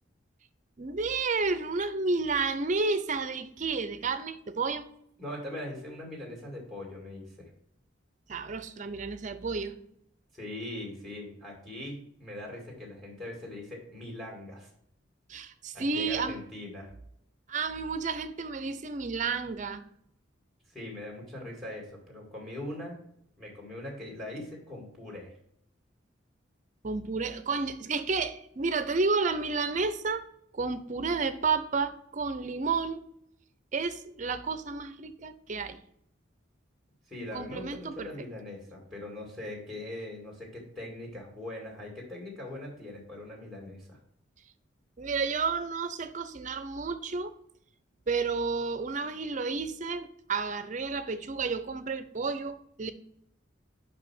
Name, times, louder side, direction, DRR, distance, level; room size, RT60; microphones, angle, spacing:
voice 1, 0.8-4.9 8.3-9.8 15.3-16.4 17.5-19.8 26.8-30.3 30.5-33.0 33.7-35.8 37.3-38.1 45.0-47.3 48.1-52.9, right 4 dB, 40° right, 0.5 m, -31 dB
voice 2, 5.2-7.5 10.3-14.7 15.7-16.9 20.7-23.0 23.4-25.3 37.1-44.0, left 1 dB, ahead, 1.9 m, -41 dB
5.4 x 4.8 x 5.9 m
head